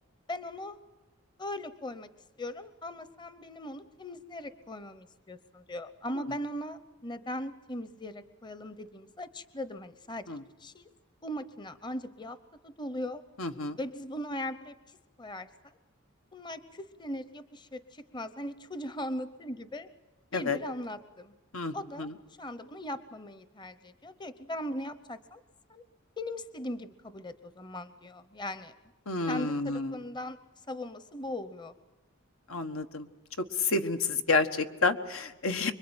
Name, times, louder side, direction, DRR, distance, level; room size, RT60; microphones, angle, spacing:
voice 1, 0.3-0.8 1.4-2.1 2.4-10.3 10.6-10.9 11.2-12.4 12.6-13.2 13.8-15.5 16.3-19.9 20.3-21.3 21.7-22.1 22.4-25.4 25.7-25.8 26.2-28.7 29.3-30.4 30.7-31.7, left 1 dB, 20° left, 13 dB, 0.8 m, -39 dB
voice 2, 13.4-13.8 20.3-20.6 21.5-22.2 29.1-30.0 32.5-33.1 33.4-35.7, left 3 dB, 85° left, 7 dB, 1.5 m, -30 dB
25.5 x 23.0 x 8.9 m, 1.1 s
head